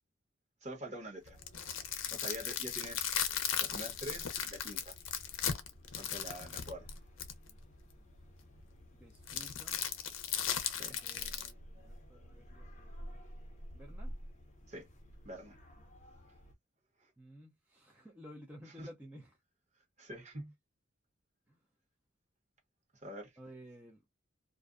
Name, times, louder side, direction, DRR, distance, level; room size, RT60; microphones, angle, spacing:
voice 1, 0.6-1.4 2.1-3.1 3.6-4.9 6.0-6.9 10.7-11.0 14.7-14.9 15.2-15.6 18.8-18.9 20.0-20.5 23.0-23.3, equal, 35° right, 1.1 m, -45 dB
sound 1, 1.3-7.5 9.3-11.5, left 9 dB, 75° left, 0.5 m, -37 dB
sound 2, 1.3-16.5, equal, 40° left, 0.7 m, -52 dB
voice 2, 8.9-9.8 11.0-13.2 13.7-14.1 17.2-19.4 21.5-21.6 23.4-24.1, equal, 10° right, 0.4 m, -54 dB
2.5 x 2.1 x 2.3 m
head